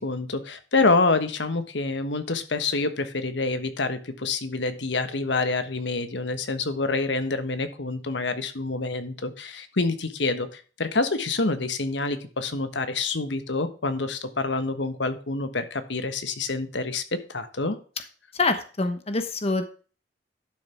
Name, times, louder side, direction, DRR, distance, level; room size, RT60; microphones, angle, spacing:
voice 1, 0.0-17.8, left 3 dB, 80° left, 9 dB, 1.3 m, -27 dB
voice 2, 18.3-19.7, left 3 dB, 35° left, 8 dB, 1.1 m, -25 dB
11.5 x 6.8 x 3.5 m, 0.38 s
head